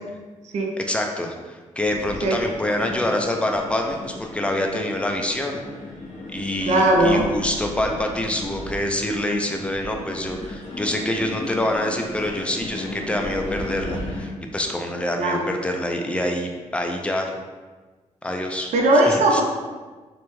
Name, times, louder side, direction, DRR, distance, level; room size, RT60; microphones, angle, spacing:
voice 1, 0.8-5.6 6.3-17.3 18.2-18.7 19.1-19.4, left 1 dB, 10° left, 3 dB, 0.3 m, -26 dB
sound 1, 1.8-14.3, left 2 dB, 60° left, 0.8 m, -35 dB
voice 2, 6.7-7.2 15.2-15.4 18.7-19.4, right 1 dB, 65° right, 1 dB, 0.4 m, -18 dB
2.7 x 2.1 x 3.0 m, 1.3 s
cardioid pair, 80°, 13 cm